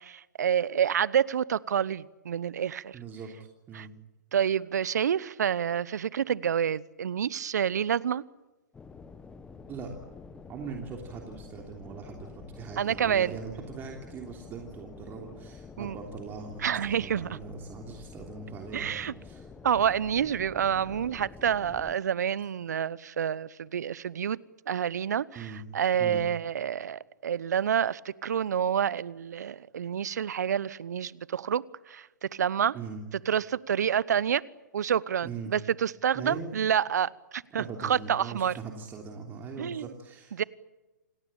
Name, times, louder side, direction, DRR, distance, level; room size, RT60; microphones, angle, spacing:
voice 1, 0.0-3.0 3.7-3.9 4.3-8.2 12.8-13.3 15.8-16.0 16.6-17.4 18.7-19.1 19.6-24.4 24.7-32.7 33.3-34.4 34.7-38.5 39.6-39.9 40.3-40.4, right 8 dB, 65° right, 1.0 m, -28 dB
voice 2, 2.9-3.3 3.7-3.9 9.7-9.9 10.5-19.5 25.3-25.6 26.0-26.2 32.7-33.0 35.2-35.5 36.1-36.6 37.5-40.4, right 5 dB, 20° right, 3.2 m, -41 dB
sound 1, 8.7-21.9, left 5 dB, 10° left, 1.3 m, -48 dB
28.0 x 19.0 x 8.8 m
hypercardioid pair, 130°, 10 cm